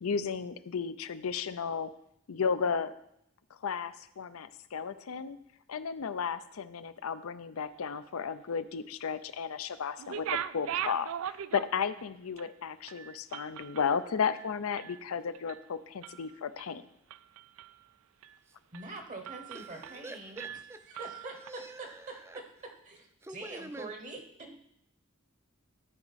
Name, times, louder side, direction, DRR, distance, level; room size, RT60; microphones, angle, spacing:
voice 1, 0.0-1.9 2.3-2.9 3.6-5.4 5.7-16.9, left 6 dB, 80° left, 13 dB, 0.5 m, -34 dB
sound 1, 10.0-12.0 12.4-12.5 12.9-15.0 15.3-15.7 16.0-16.7 17.1-17.8 18.2-18.4 18.7-18.9 19.2-20.1 20.4-21.5, right 10 dB, 75° right, 0.3 m, -40 dB
voice 2, 18.7-20.4 20.9-22.4 22.8-24.6, right 2 dB, 35° right, 5 dB, 0.9 m, -44 dB
voice 3, 19.5-21.1 21.3-22.4 23.2-23.9 24.4-24.6, right 2 dB, 10° right, 10 dB, 0.4 m, -47 dB
13.0 x 4.7 x 4.1 m, 0.76 s
head